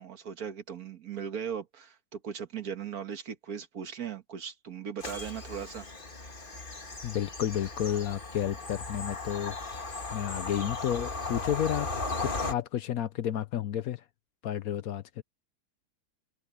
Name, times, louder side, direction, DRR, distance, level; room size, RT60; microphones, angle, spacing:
voice 1, 0.0-5.9, right 7 dB, 65° right, 1.8 m, -38 dB
Bird vocalization bird call bird song / Train, 5.0-12.5, left 3 dB, 30° left, 2.0 m, -37 dB
voice 2, 7.0-9.6 10.1-11.9 12.2-14.0 14.4-15.2, left 10 dB, 65° left, 1.0 m, -31 dB
open air
omnidirectional pair, 1.7 m